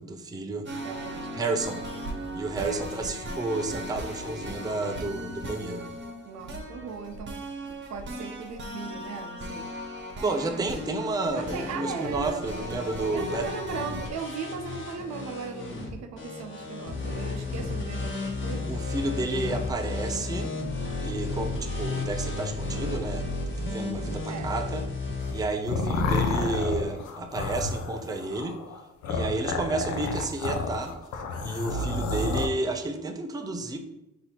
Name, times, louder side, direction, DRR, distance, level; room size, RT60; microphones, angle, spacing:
voice 1, 0.0-1.9 2.2-5.9 10.2-13.5 18.7-20.5 21.0-24.8 25.3-28.6 29.1-30.9 31.4-33.8, right 2 dB, 15° right, 5 dB, 0.5 m, -31 dB
sound 1, 0.7-14.1, equal, 40° right, 0.9 m, -37 dB
voice 2, 0.8-1.3 2.6-2.9 6.2-7.4 7.9-9.7 11.3-12.4 13.1-18.7 23.7-24.5, right 6 dB, 65° right, 6 dB, 0.6 m, -38 dB
sound 2, 11.3-25.4, left 3 dB, 40° left, 1.2 m, -33 dB
sound 3, 25.2-32.5, left 3 dB, 80° left, 0.6 m, -30 dB
4.1 x 2.7 x 4.3 m, 0.91 s
cardioid pair, 90°, 30 cm